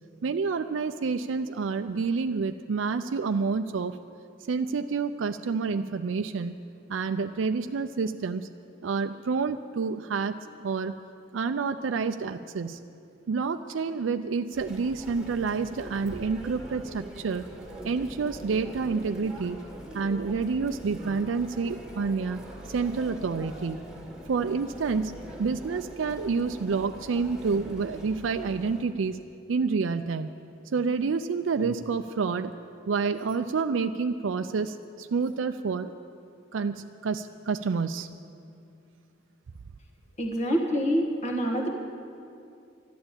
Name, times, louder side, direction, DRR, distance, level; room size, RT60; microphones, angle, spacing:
voice 1, 0.2-4.0 4.5-6.6 6.9-8.5 8.8-11.0 11.3-12.8 13.3-17.5 17.8-19.6 19.9-22.4 22.7-23.8 24.3-29.2 29.5-30.3 30.7-32.5 32.9-35.9 36.5-38.1, right 5 dB, 85° right, 8 dB, 0.4 m, -28 dB
Chatter, 14.5-28.8, right 1 dB, 5° right, 2.0 m, -43 dB
voice 2, 40.2-41.7, equal, 40° left, 2 dB, 1.5 m, -26 dB
12.5 x 11.5 x 8.8 m, 2.5 s
head